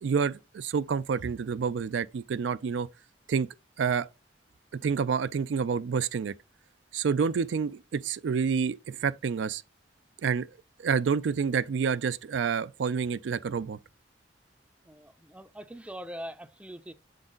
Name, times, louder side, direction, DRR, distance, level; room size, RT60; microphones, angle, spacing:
voice 1, 0.0-2.9 3.3-3.5 3.8-4.1 4.8-6.3 6.9-9.6 10.2-10.5 10.8-13.8, right 6 dB, 90° right, 0.4 m, -28 dB
voice 2, 14.8-16.9, equal, 5° right, 0.4 m, -42 dB
6.9 x 3.9 x 3.8 m
head